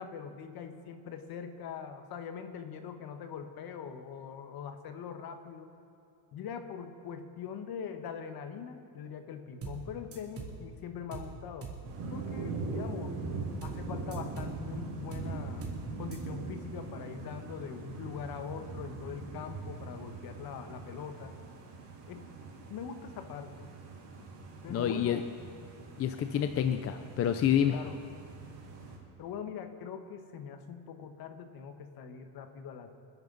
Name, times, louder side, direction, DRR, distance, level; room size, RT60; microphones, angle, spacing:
voice 1, 0.0-5.7 6.3-11.7 12.1-13.2 13.6-15.7 16.0-21.3 22.1-22.3 22.7-23.7 24.6-25.2 27.5-28.0 29.2-33.0, left 7 dB, 55° left, 7 dB, 1.5 m, -42 dB
sound 1, 9.6-9.9 10.1-10.6 11.1-11.4 11.6-11.9 13.6-13.9 14.1-14.6 15.1-15.4 15.6-15.9 16.1-16.2, right 5 dB, 30° right, 2.8 m, -42 dB
sound 2, 11.8-29.0, right 3 dB, 65° right, 3.8 m, -42 dB
voice 2, 24.7-25.2 26.0-27.8, left 9 dB, 35° left, 7 dB, 0.6 m, -28 dB
28.5 x 10.5 x 4.1 m, 2.7 s
cardioid pair, 150°, 43 cm